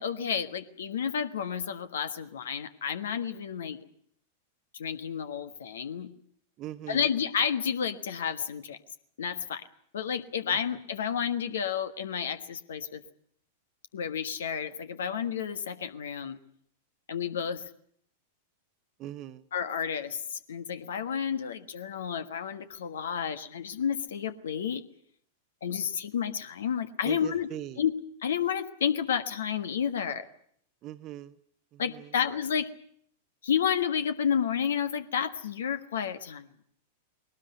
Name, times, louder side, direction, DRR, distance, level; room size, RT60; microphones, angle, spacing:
voice 1, 0.0-3.8 4.7-6.1 6.9-8.8 9.2-9.6 9.9-13.0 13.9-16.4 17.1-17.6 19.5-24.8 25.6-27.5 27.8-27.9 28.2-30.3 31.8-32.7 33.4-36.5, left 8 dB, 65° left, 11 dB, 1.4 m, -31 dB
voice 2, 6.6-7.1 19.0-19.5 27.0-27.8 30.8-31.4 31.7-32.1, right 13 dB, 35° right, 10 dB, 1.0 m, -40 dB
21.0 x 19.0 x 9.3 m, 0.66 s
figure-of-eight pair, 95°, 0 cm